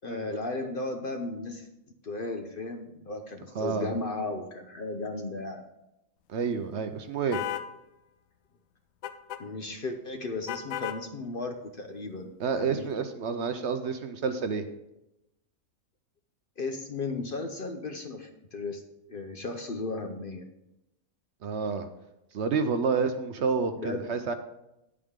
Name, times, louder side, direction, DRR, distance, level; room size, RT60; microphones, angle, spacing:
voice 1, 0.0-1.7 2.0-5.6 9.4-12.9 16.6-18.8 19.1-20.5 23.8-24.1, left 3 dB, 50° left, 5 dB, 0.8 m, -35 dB
voice 2, 3.5-3.9 6.3-7.4 12.4-14.6 21.4-21.9 22.3-24.3, right 5 dB, 60° right, 9 dB, 0.9 m, -29 dB
sound 1, 7.3-7.7 9.0-9.4 10.5-11.0, left 11 dB, 75° left, 0.9 m, -34 dB
9.7 x 8.5 x 3.7 m, 0.90 s
omnidirectional pair, 1.5 m